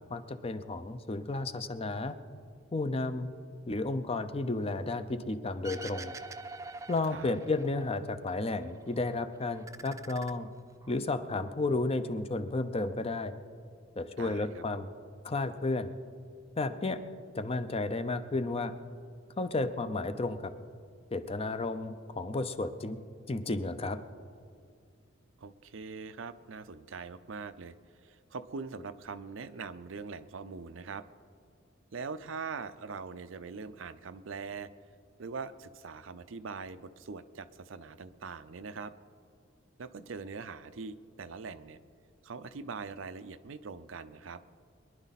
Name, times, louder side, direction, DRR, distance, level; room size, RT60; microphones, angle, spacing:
voice 1, 0.1-2.1 2.7-3.3 3.7-6.1 6.9-10.5 10.9-13.3 14.0-14.9 15.2-15.9 16.6-17.0 17.3-18.7 19.4-20.5 21.1-23.0 23.3-24.0, left 2 dB, 30° left, 10 dB, 0.6 m, -32 dB
sound 1, 5.6-8.0 8.3-9.1 9.5-11.0, right 3 dB, 15° right, 0.4 m, -45 dB
voice 2, 14.2-14.6 25.4-27.7 28.0-31.0 31.9-34.7 35.2-38.9 39.8-41.8 42.2-44.4, right 5 dB, 70° right, 12 dB, 0.6 m, -42 dB
23.5 x 11.0 x 4.1 m, 2.3 s
head